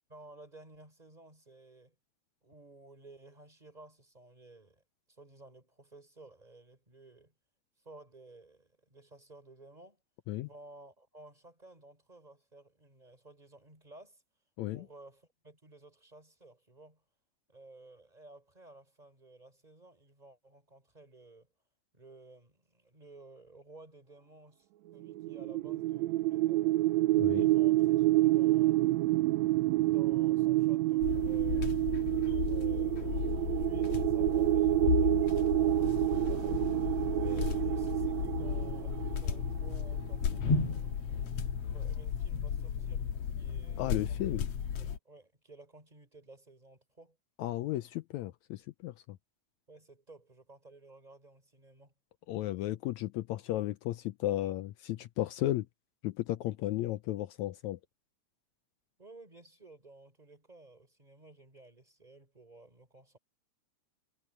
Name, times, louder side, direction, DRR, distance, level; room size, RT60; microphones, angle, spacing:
voice 1, 0.1-2.0 2.4-7.3 7.8-10.0 10.5-14.2 14.7-17.0 17.5-21.5 21.9-26.8 27.3-28.8 29.8-31.7 32.3-36.6 37.2-40.8 41.4-43.1 43.4-44.5 44.8-47.2 49.7-51.9 59.0-63.2, right 2 dB, 10° right, 5.2 m, -56 dB
sound 1, 25.0-40.1, right 17 dB, 80° right, 1.8 m, -28 dB
voice 2, 27.2-27.5 43.8-44.5 47.4-49.2 52.3-55.7 56.0-57.8, left 15 dB, 80° left, 1.9 m, -34 dB
sound 2, 31.0-45.0, left 7 dB, 60° left, 2.2 m, -34 dB
omnidirectional pair, 3.4 m